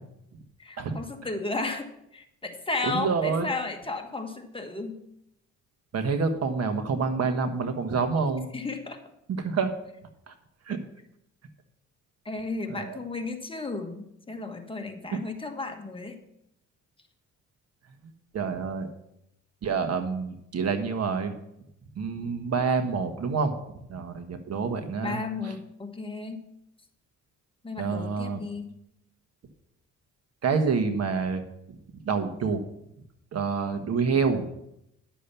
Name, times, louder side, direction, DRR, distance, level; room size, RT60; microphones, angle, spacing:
voice 1, 0.6-5.0 8.5-9.0 12.2-16.2 25.0-26.4 27.6-28.7, left 3 dB, 15° left, 4 dB, 1.5 m, -34 dB
voice 2, 2.8-3.5 5.9-8.5 9.3-9.7 10.3-10.4 10.7-10.8 12.7-13.0 15.1-15.2 18.3-18.9 19.6-21.4 21.9-23.6 23.9-25.5 27.8-28.4 30.4-31.4 32.0-32.6 33.3-34.5, right 5 dB, 55° right, 8 dB, 1.4 m, -27 dB
11.0 x 6.8 x 5.7 m, 0.80 s
cardioid pair, 90°, 30 cm